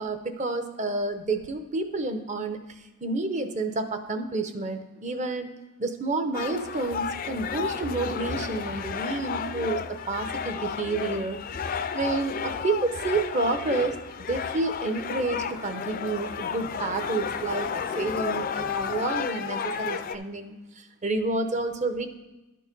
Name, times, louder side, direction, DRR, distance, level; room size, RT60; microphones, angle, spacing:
voice 1, 0.0-2.6 3.0-5.5 5.8-11.4 11.9-14.0 14.3-22.1, right 3 dB, 35° right, 8 dB, 0.7 m, -29 dB
sound 1, 6.3-20.2, left 6 dB, 40° left, 0.4 m, -32 dB
11.5 x 4.7 x 5.2 m, 1.0 s
head